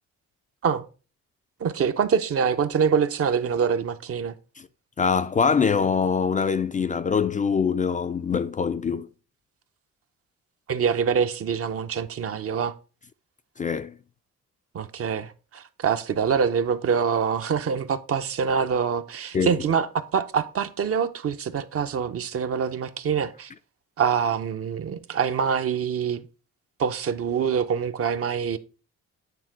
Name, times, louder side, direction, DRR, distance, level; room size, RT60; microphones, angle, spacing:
voice 1, 1.6-4.3 10.7-12.7 14.7-23.5 24.0-26.3 26.8-28.6, right 7 dB, 50° right, 0.7 m, -25 dB
voice 2, 5.0-9.1 13.6-14.0 19.3-19.5, left 6 dB, 25° left, 0.3 m, -23 dB
8.8 x 3.6 x 4.6 m
cardioid pair, 90°, 30 cm